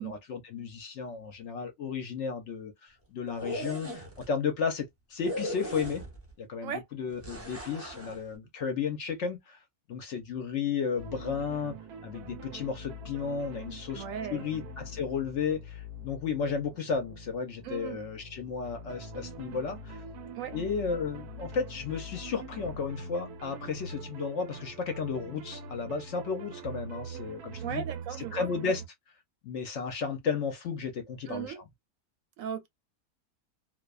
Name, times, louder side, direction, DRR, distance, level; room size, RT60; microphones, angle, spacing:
voice 1, 0.0-6.0 6.4-9.6 9.9-11.8 12.0-14.0 14.3-20.0 20.5-27.8 28.3-28.8 29.4-31.6, left 5 dB, 65° left, 0.8 m, -33 dB
sound 1, 3.3-4.3 5.2-6.3 7.2-8.2, equal, 15° right, 0.6 m, -38 dB
sound 2, 11.0-28.9, right 1 dB, 90° right, 1.1 m, -43 dB
voice 2, 13.9-14.4 17.6-18.0 20.4-20.5 27.6-28.7 31.3-31.6 32.4-32.7, right 9 dB, 70° right, 0.9 m, -37 dB
2.5 x 2.2 x 2.3 m
omnidirectional pair, 1.6 m